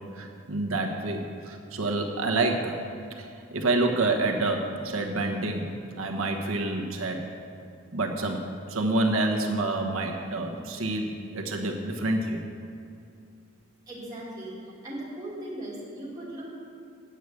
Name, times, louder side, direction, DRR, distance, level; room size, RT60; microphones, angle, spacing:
voice 1, 0.1-2.8 3.2-5.7 6.0-7.2 7.9-12.4, right 2 dB, 80° right, 2 dB, 1.1 m, -28 dB
voice 2, 13.9-14.5 14.8-16.5, right 1 dB, 15° right, -7 dB, 2.4 m, -38 dB
9.0 x 6.4 x 8.4 m, 2.4 s
head